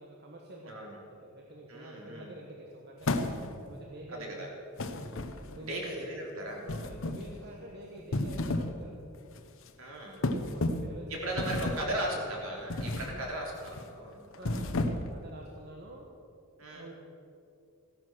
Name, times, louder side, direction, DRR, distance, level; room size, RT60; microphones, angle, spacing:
voice 1, 0.0-3.2 3.6-4.5 5.5-6.1 6.6-9.0 10.3-12.4 13.0-13.2 14.4-16.0 16.7-16.9, right 1 dB, 50° right, 0 dB, 1.2 m, -47 dB
voice 2, 0.7-1.0 1.7-2.3 4.1-4.5 5.6-6.7 9.8-10.2 11.1-14.2 16.6-16.9, right 1 dB, 65° right, -1 dB, 3.3 m, -37 dB
sound 1, 3.0-3.7 4.8-5.7 6.7-7.4 8.0-8.8 9.1-9.4 10.2-11.0 11.4-11.9 12.7-13.2 13.5-13.8 14.3-15.2, left 2 dB, 60° left, 0.9 m, -32 dB
15.0 x 11.0 x 6.2 m, 2.5 s
head